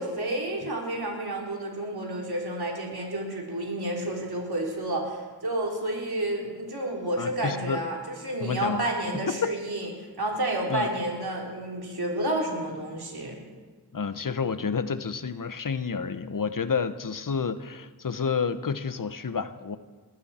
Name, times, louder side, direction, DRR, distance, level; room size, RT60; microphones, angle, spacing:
voice 1, 0.0-9.9 10.2-13.4, right 1 dB, 75° right, -1 dB, 3.5 m, -30 dB
voice 2, 7.2-7.8 8.4-9.5 10.7-10.9 13.9-19.8, left 5 dB, 55° left, 12 dB, 0.9 m, -30 dB
19.5 x 15.0 x 4.3 m, 1.4 s
cardioid pair, 40°, 38 cm